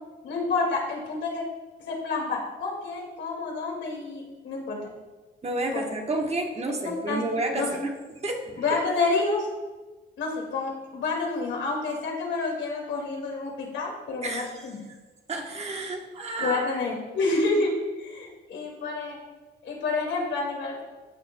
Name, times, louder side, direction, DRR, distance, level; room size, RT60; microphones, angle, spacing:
voice 1, 0.2-1.4 1.9-4.8 5.6-5.8 7.1-7.2 7.5-7.7 8.6-9.5 10.2-14.8 16.4-19.2 19.6-20.8, left 3 dB, 65° left, 0 dB, 2.1 m, -29 dB
voice 2, 5.4-7.9 8.2-8.6 14.2-14.7 15.3-16.6, right 2 dB, 30° right, 2 dB, 1.2 m, -30 dB
14.5 x 5.8 x 2.2 m, 1.2 s
cardioid pair, 90°, 20 cm